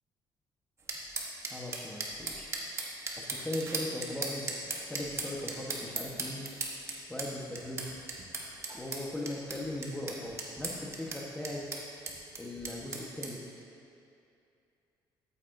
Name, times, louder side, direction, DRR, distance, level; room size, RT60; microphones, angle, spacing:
sound 1, 0.9-13.3, right 3 dB, 30° right, 1.1 m, -38 dB
voice 1, 1.5-2.5 3.2-4.5 4.9-6.4 7.1-7.9 8.7-11.6 12.4-13.4, left 1 dB, 10° left, -2 dB, 1.1 m, -39 dB
13.0 x 8.4 x 2.7 m, 2.6 s
cardioid pair, 130°, 9 cm